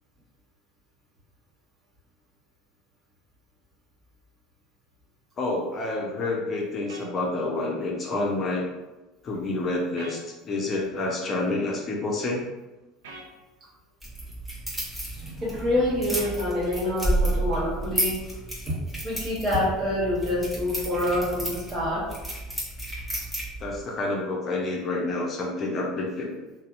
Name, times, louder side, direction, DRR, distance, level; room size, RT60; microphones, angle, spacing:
voice 1, 5.4-8.7 9.2-12.4 23.6-26.4, left 2 dB, 40° left, -2 dB, 0.6 m, -28 dB
sound 1, 6.9-7.1 10.0-10.2 13.0-13.3 16.1-16.4, right 2 dB, 75° right, 0.4 m, -42 dB
sound 2, 14.0-23.8, right 1 dB, 5° right, 1.2 m, -31 dB
voice 2, 15.1-18.2 18.7-18.8 19.0-22.1, left 1 dB, 35° right, -6 dB, 1.2 m, -26 dB
2.6 x 2.0 x 2.5 m, 1.1 s
hypercardioid pair, 70°, 0 cm